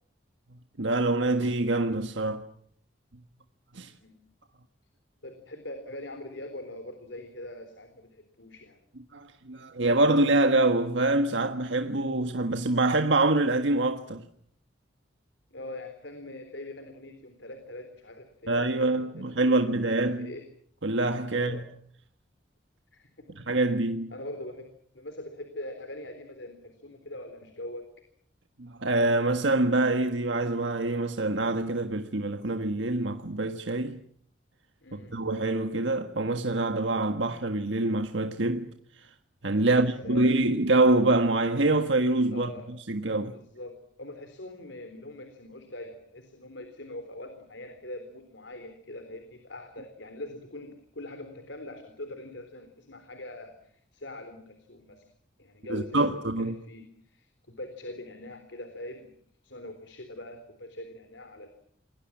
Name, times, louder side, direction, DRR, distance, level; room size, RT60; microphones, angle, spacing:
voice 1, 0.8-2.4 3.7-3.9 9.1-14.2 18.5-20.3 20.8-21.6 23.4-24.1 28.6-34.0 34.9-38.7 39.0-39.1 39.4-42.5 42.9-43.3 55.7-56.5, right 2 dB, 80° right, 1.5 m, -25 dB
voice 2, 5.2-8.8 15.5-20.4 21.3-21.6 22.9-23.4 24.1-24.7 24.9-27.9 34.8-35.1 39.6-40.3 42.3-42.7 43.3-55.0 55.4-56.1 56.4-59.1 59.4-61.5, left 1 dB, 80° left, 3.8 m, -42 dB
28.0 x 22.0 x 7.5 m
head